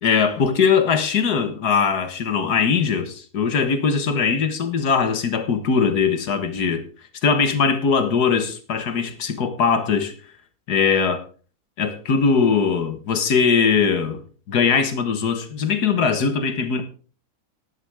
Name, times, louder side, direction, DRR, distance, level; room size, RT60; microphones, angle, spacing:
voice 1, 0.0-6.8 7.2-10.1 10.7-11.2 11.8-14.2 14.5-16.8, left 6 dB, 80° left, 2.0 m, -20 dB
14.5 x 11.0 x 3.6 m
omnidirectional pair, 1.6 m